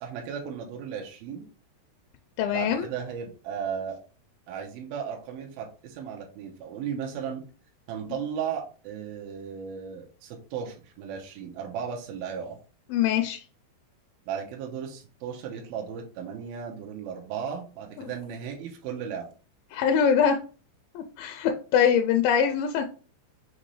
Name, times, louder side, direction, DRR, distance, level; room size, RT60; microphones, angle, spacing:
voice 1, 0.0-1.5 2.5-4.0 4.5-7.4 7.9-12.6 14.3-19.3, right 7 dB, 75° right, 0 dB, 2.4 m, -35 dB
voice 2, 2.4-2.9 12.9-13.4 19.7-20.4 21.0-22.8, left 7 dB, 85° left, 6 dB, 2.1 m, -23 dB
6.2 x 2.7 x 3.1 m, 0.37 s
omnidirectional pair, 4.4 m